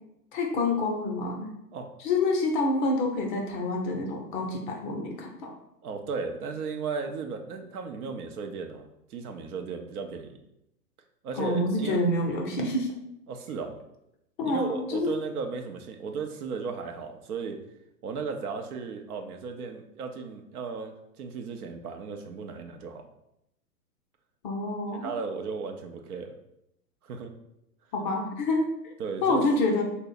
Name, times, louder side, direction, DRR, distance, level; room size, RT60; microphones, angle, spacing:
voice 1, 0.3-1.5 2.0-5.5 11.3-12.9 14.4-15.1 24.4-25.1 27.9-28.7 29.2-29.8, left 2 dB, 35° left, 0 dB, 0.5 m, -27 dB
voice 2, 5.8-10.4 11.2-12.0 13.3-13.8 14.4-17.6 18.0-23.1 25.0-26.3 27.0-27.3 29.0-29.4, right 5 dB, 70° right, 5 dB, 0.6 m, -35 dB
2.9 x 2.0 x 3.9 m, 0.82 s
hypercardioid pair, 115°, 47 cm